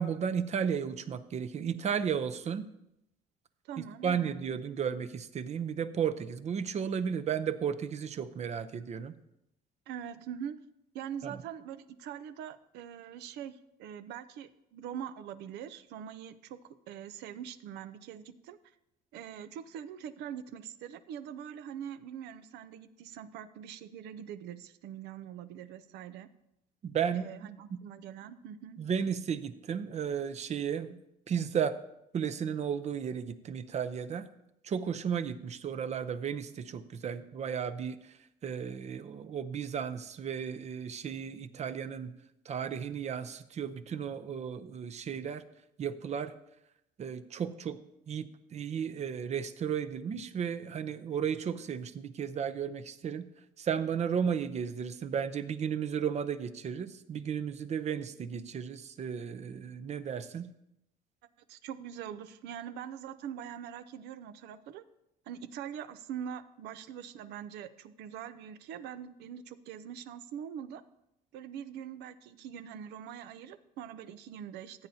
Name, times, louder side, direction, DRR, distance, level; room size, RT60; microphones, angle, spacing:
voice 1, 0.0-2.7 4.0-9.1 11.2-11.4 26.8-27.3 28.8-31.0 31.3-31.8 32.1-34.3 34.6-38.2 38.4-42.1 42.5-45.4 45.8-46.3 47.0-47.8 48.1-53.2 53.6-60.5, right 7 dB, 40° right, 11 dB, 0.7 m, -34 dB
voice 2, 3.6-4.8 9.9-10.6 10.9-18.7 19.1-26.3 27.1-28.8 61.5-64.8 65.3-70.8 71.3-74.9, right 9 dB, 85° right, 13 dB, 0.6 m, -43 dB
14.5 x 8.6 x 2.8 m, 0.84 s
cardioid pair, 110°, 17 cm